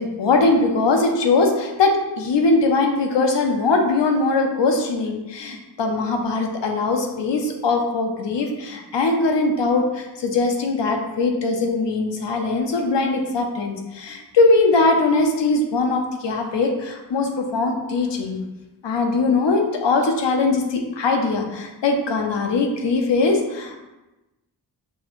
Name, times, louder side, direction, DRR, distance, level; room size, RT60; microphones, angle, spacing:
voice 1, 0.0-18.4 18.8-23.8, left 3 dB, 80° left, 3 dB, 0.8 m, -21 dB
6.1 x 2.9 x 2.5 m, 1.0 s
cardioid pair, 40°, 43 cm